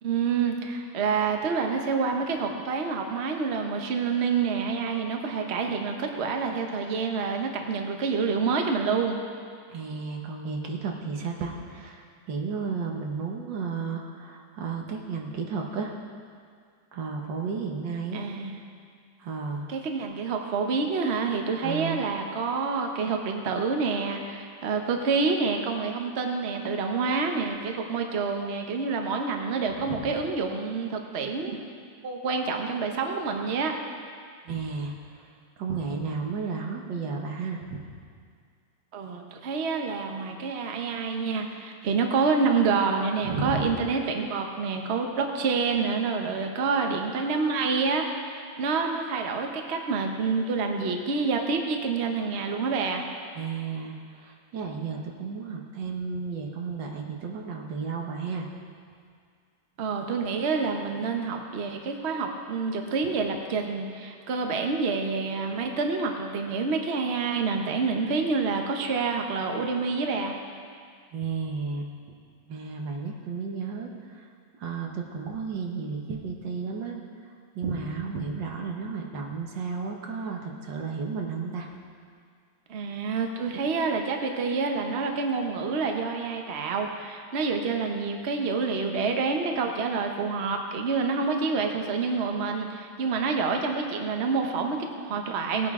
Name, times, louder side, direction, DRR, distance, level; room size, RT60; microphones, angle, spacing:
voice 1, 0.0-9.2 18.1-18.6 19.7-31.6 32.0-33.7 38.9-53.1 59.8-70.3 82.7-95.7, right 4 dB, 45° right, 3 dB, 1.0 m, -27 dB
voice 2, 9.7-15.9 16.9-18.2 19.2-19.7 21.6-22.0 29.9-30.1 34.5-35.3 35.6-37.8 43.2-43.7 53.4-58.5 71.1-71.9 72.5-74.2 74.6-77.0 77.6-81.7, right 5 dB, 85° right, 1 dB, 1.9 m, -33 dB
18.0 x 9.1 x 3.7 m, 2.1 s
omnidirectional pair, 1.9 m